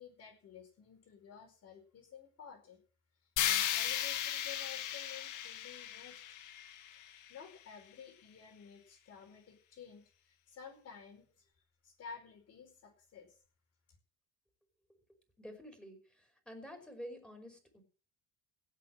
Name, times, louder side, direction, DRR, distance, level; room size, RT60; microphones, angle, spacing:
voice 1, 0.0-2.8 3.4-6.2 6.9-10.0 10.3-11.5 11.8-13.3, left 7 dB, 50° left, 4 dB, 5.0 m, -53 dB
sound 1, 3.4-7.4, left 11 dB, 65° left, 1.9 m, -36 dB
voice 2, 15.4-17.8, equal, 5° left, 4 dB, 5.2 m, -49 dB
17.0 x 6.2 x 7.6 m, 0.40 s
supercardioid pair, 105°, 33 cm